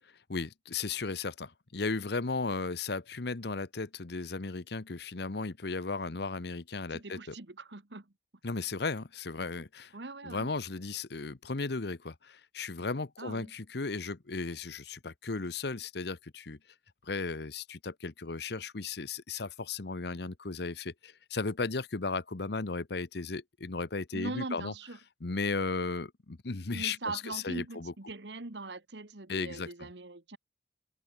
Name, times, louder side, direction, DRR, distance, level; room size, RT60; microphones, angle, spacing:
voice 1, 0.3-1.3 1.7-7.2 8.4-9.6 10.3-12.0 12.6-14.8 15.3-16.2 16.5-16.6 17.1-17.6 18.0-20.7 21.3-24.7 25.2-26.1 26.5-27.9 29.3-29.7, left 3 dB, 65° left, 1.0 m, -35 dB
voice 2, 6.9-8.1 9.9-10.5 13.2-13.5 24.1-25.0 26.7-30.4, right 2 dB, 75° right, 1.7 m, -41 dB
head